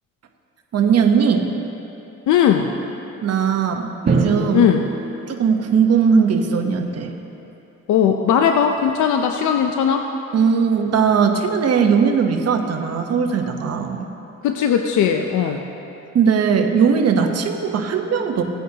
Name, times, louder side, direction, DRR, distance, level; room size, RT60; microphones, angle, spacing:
voice 1, 0.7-1.5 3.2-4.7 5.3-7.1 10.3-14.1 16.1-18.4, right 6 dB, 55° right, 4 dB, 1.0 m, -19 dB
voice 2, 2.3-2.7 4.5-4.8 7.9-10.0 14.4-15.6, left 8 dB, 75° left, 5 dB, 0.6 m, -18 dB
Drum, 4.1-6.0, right 4 dB, 35° right, 1.4 m, -24 dB
17.0 x 9.1 x 2.9 m, 2.9 s
cardioid pair, 90°, 30 cm